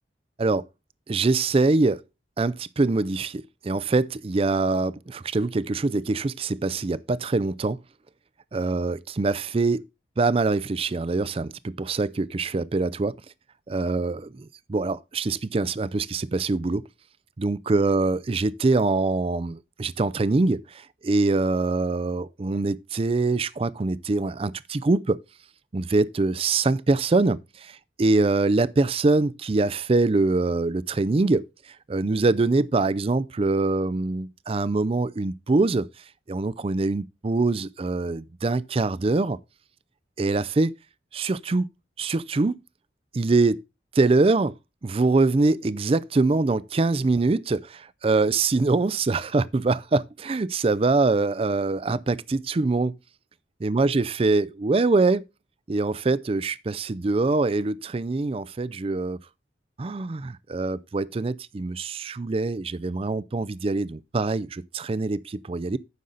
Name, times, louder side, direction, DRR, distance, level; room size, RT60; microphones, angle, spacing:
voice 1, 1.1-2.0 2.4-7.8 8.5-9.8 10.2-13.2 13.7-16.8 17.4-25.2 25.7-31.5 31.9-35.9 36.3-39.4 40.2-40.8 41.1-41.7 42.0-42.6 43.1-43.6 43.9-44.5 44.8-53.0 53.6-55.2 55.7-59.2 59.8-65.8, right 3 dB, 30° right, 0.4 m, -24 dB
9.5 x 6.5 x 3.9 m
head